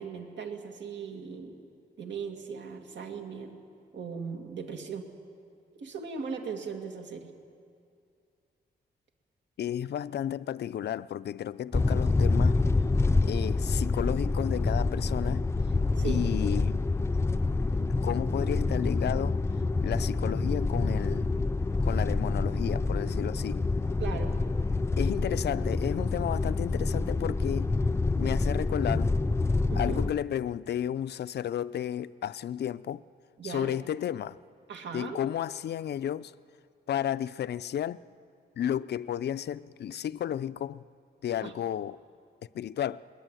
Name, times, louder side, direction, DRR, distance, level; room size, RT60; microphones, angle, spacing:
voice 1, 0.0-1.6 2.0-3.6 3.9-5.1 5.7-7.3 16.0-16.2 24.0-24.4 29.7-30.0 33.4-33.8 34.7-35.2 41.4-41.5, right 6 dB, 85° right, 2.5 m, -38 dB
voice 2, 9.6-12.6 13.2-15.4 16.0-16.8 18.0-19.4 19.8-21.3 21.8-23.6 25.0-27.7 28.2-29.1 29.8-33.0 33.4-34.4 34.9-36.3 36.9-38.0 38.6-40.8 41.2-42.0 42.5-43.0, left 10 dB, 65° left, 0.5 m, -32 dB
sound 1, 11.7-30.1, left 3 dB, 15° left, 0.5 m, -27 dB
22.5 x 20.0 x 9.1 m
wide cardioid pair, 150°, 18 cm